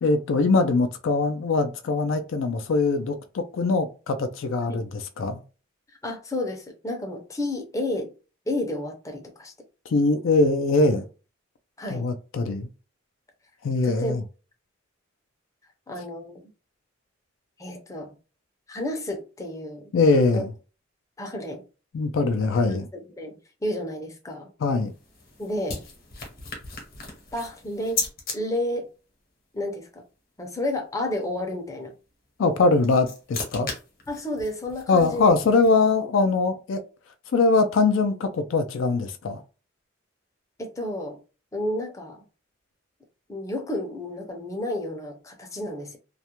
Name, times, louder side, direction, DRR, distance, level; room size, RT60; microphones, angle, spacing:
voice 1, 0.0-5.4 9.9-11.0 11.9-12.7 13.6-14.2 19.9-20.5 21.9-22.9 24.6-24.9 32.4-33.7 34.9-36.8 37.3-39.4, left 3 dB, 70° left, 0.4 m, -22 dB
voice 2, 6.0-8.1 8.5-9.5 11.8-12.1 13.8-14.1 15.9-16.5 17.6-18.1 18.7-19.9 20.3-20.4 21.2-21.6 22.9-24.5 25.4-25.8 27.3-28.0 28.3-28.9 29.5-30.0 30.4-31.9 34.1-35.4 40.6-41.2 41.5-42.2 43.3-46.0, left 1 dB, 15° left, 0.5 m, -31 dB
sound 1, 24.7-28.4 32.5-35.9, left 3 dB, 50° left, 0.8 m, -36 dB
2.3 x 2.1 x 2.9 m
head